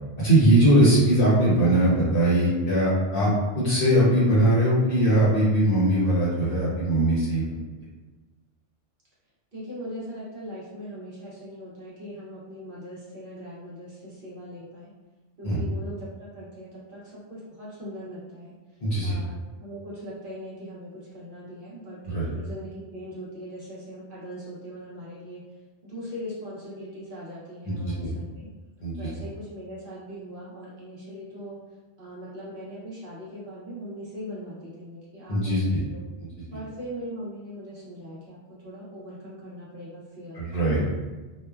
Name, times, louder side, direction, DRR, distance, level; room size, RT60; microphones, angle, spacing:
voice 1, 0.2-3.3 3.5-7.6 15.4-15.6 18.8-19.1 22.1-22.2 27.7-28.1 28.8-29.1 35.3-35.6 40.3-40.8, right 1 dB, 50° left, -8 dB, 1.0 m, -21 dB
voice 2, 9.5-14.9 15.4-18.5 19.0-22.0 22.3-25.4 25.8-28.5 29.0-31.6 32.0-36.0 36.5-40.9, equal, 50° right, -8 dB, 0.8 m, -40 dB
3.1 x 2.1 x 2.3 m, 1.3 s
omnidirectional pair, 1.3 m